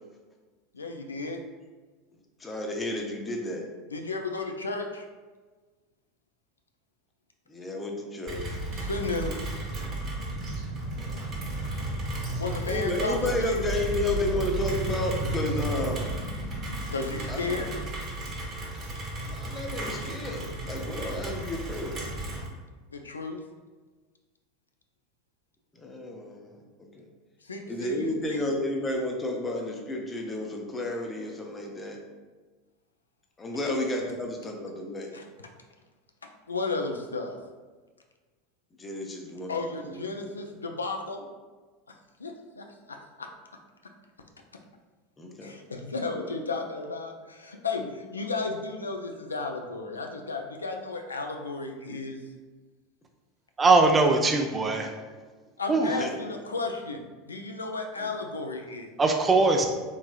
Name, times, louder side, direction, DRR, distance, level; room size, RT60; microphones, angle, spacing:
voice 1, 0.7-1.4 3.9-5.0 8.7-9.4 12.4-13.5 16.9-17.7 22.9-23.4 27.4-28.4 33.7-33.8 35.1-35.2 36.5-37.4 39.5-41.3 42.2-43.3 45.4-52.2 55.6-58.9, left 3 dB, 85° left, 3 dB, 0.3 m, -34 dB
voice 2, 2.4-3.6 7.5-8.6 10.9-11.6 12.7-16.0 17.3-17.7 19.3-22.0 25.8-26.5 26.8-27.0 27.7-32.0 33.4-35.1 38.8-40.3 45.2-45.5 47.8-47.9 56.0-56.3 58.0-58.1, left 1 dB, 20° left, 1 dB, 0.6 m, -32 dB
Rain, 8.3-22.5, right 1 dB, 35° right, 1.0 m, -33 dB
voice 3, 53.6-54.9 55.7-55.9 59.0-59.7, right 3 dB, 20° right, 4 dB, 0.5 m, -21 dB
3.5 x 3.1 x 2.2 m, 1.3 s
figure-of-eight pair, 80°, 0 cm